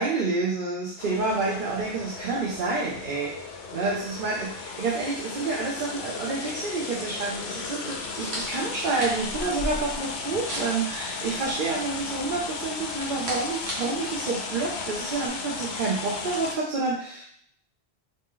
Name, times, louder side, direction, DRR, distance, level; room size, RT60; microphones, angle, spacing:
voice 1, 0.0-17.2, right 3 dB, 55° right, -3 dB, 0.7 m, -29 dB
sound 1, 1.0-16.6, left 4 dB, 80° left, 0.8 m, -35 dB
sound 2, 8.0-15.3, equal, 80° right, 1.2 m, -38 dB
3.1 x 2.7 x 3.6 m, 0.64 s
omnidirectional pair, 1.1 m